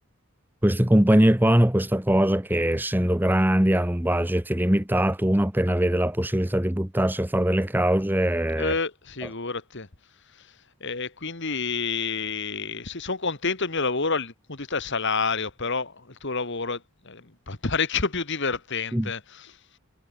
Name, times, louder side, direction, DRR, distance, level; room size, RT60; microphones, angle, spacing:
voice 1, 0.6-8.7 18.9-19.1, right 1 dB, 10° right, 1.0 m, -22 dB
voice 2, 8.6-9.9 10.4-10.5 10.8-19.6, left 4 dB, 55° left, 2.1 m, -29 dB
head